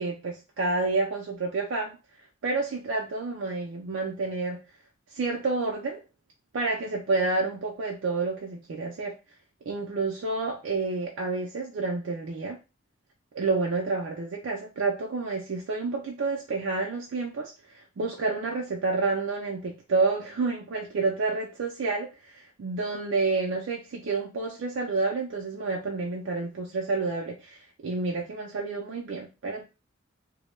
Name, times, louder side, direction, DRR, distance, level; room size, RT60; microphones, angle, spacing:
voice 1, 0.0-2.0 2.4-4.6 5.1-6.0 6.5-9.2 9.7-12.6 13.3-29.6, right 3 dB, 75° right, 0 dB, 0.4 m, -29 dB
2.1 x 2.1 x 3.0 m, 0.29 s
head